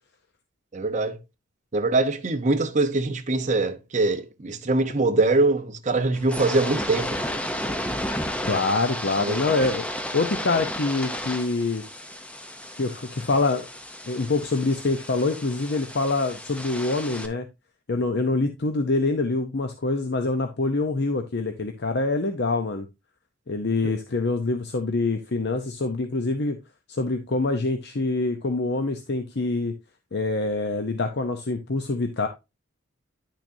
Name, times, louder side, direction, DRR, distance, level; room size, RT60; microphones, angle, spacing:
voice 1, 0.7-1.2 1.7-7.3 9.2-9.4 23.8-23.9, right 2 dB, 35° right, 0.8 m, -23 dB
sound 1, 6.1-17.3, left 1 dB, 5° left, 0.7 m, -33 dB
voice 2, 8.4-9.9 10.1-11.8 12.8-13.7 14.1-17.5 17.9-22.9 23.5-26.6 26.9-29.7 30.1-32.3, left 3 dB, 55° left, 0.7 m, -25 dB
10.0 x 6.1 x 2.7 m
head